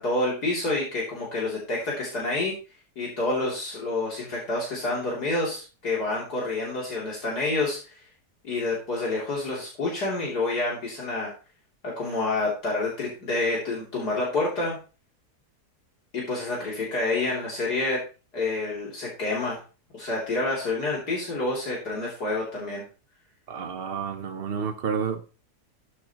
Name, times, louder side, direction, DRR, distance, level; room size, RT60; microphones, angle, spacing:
voice 1, 0.0-2.5 3.0-8.0 8.4-11.3 11.8-14.8 16.1-18.0 18.3-19.6 19.9-22.8, left 2 dB, 65° left, 3.7 m, -28 dB
voice 2, 23.5-25.2, right 6 dB, 40° right, 1.1 m, -30 dB
12.5 x 8.3 x 3.0 m
omnidirectional pair, 1.8 m